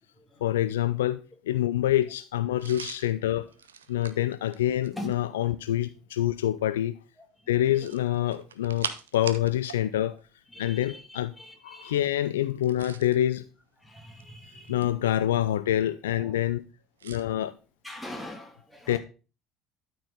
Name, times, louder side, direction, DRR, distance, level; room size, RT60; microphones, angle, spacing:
voice 1, 0.4-1.2 1.5-3.5 3.9-6.9 7.5-10.1 10.6-11.3 11.6-13.4 14.7-16.6 17.0-17.5 18.9-19.0, left 12 dB, 75° left, 0.4 m, -26 dB
sound 1, 2.6-5.3 7.7-9.8 10.1-10.3 12.5-13.2 14.0-15.1 17.0-17.3, right 8 dB, 80° right, 0.5 m, -41 dB
voice 2, 10.5-12.0 13.8-14.8 16.1-16.4 17.8-19.0, left 1 dB, 10° left, 2.7 m, -43 dB
12.5 x 4.5 x 3.9 m
figure-of-eight pair, 65°, 0 cm